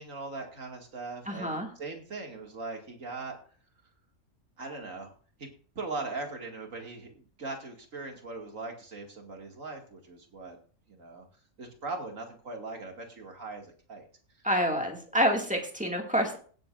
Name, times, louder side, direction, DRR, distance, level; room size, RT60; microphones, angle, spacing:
voice 1, 0.0-3.4 4.6-5.1 5.4-5.5 5.8-10.6 10.9-11.2 11.6-14.1, right 3 dB, 75° right, 2 dB, 2.5 m, -40 dB
voice 2, 1.3-1.7 14.4-16.4, equal, 5° right, 1 dB, 2.0 m, -27 dB
17.5 x 9.4 x 2.5 m, 0.42 s
omnidirectional pair, 1.4 m